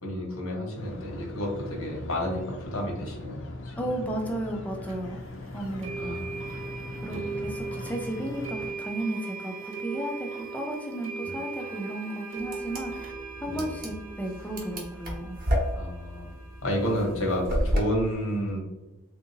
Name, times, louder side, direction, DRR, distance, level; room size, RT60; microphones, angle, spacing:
voice 1, 0.0-3.9 5.9-6.5 7.1-7.4 11.2-11.3 13.5-13.7 15.7-16.3 16.6-18.6, equal, 85° left, 0 dB, 1.1 m, -31 dB
sound 1, 0.7-8.7, left 2 dB, 60° left, 0.5 m, -41 dB
voice 2, 3.8-5.2 5.5-6.2 7.0-13.1 13.4-15.4, right 1 dB, 5° left, 1 dB, 0.4 m, -34 dB
sound 2, 4.9-5.0 5.8-17.4, right 4 dB, 75° right, 0.8 m, -39 dB
sound 3, 12.4-17.8, equal, 40° right, 0.8 m, -30 dB
3.4 x 2.8 x 2.7 m, 1.1 s
head